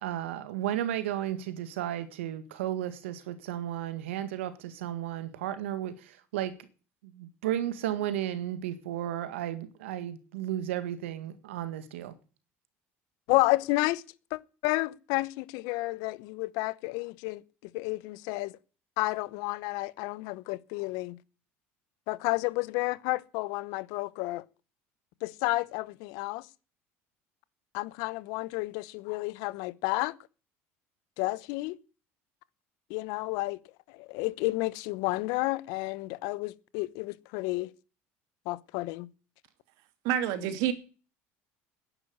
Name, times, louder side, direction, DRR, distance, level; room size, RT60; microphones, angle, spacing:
voice 1, 0.0-6.6 7.0-12.1, right 12 dB, 90° right, 1.8 m, -34 dB
voice 2, 13.3-14.0 14.3-17.4 17.7-18.5 19.0-21.2 22.1-24.4 25.2-26.5 27.7-30.1 31.2-31.8 32.9-33.6 33.9-37.7 38.5-39.1, left 21 dB, 75° left, 0.9 m, -31 dB
voice 3, 40.0-40.7, right 10 dB, 75° right, 2.4 m, -27 dB
11.0 x 10.0 x 9.6 m
supercardioid pair, 85°, 7 cm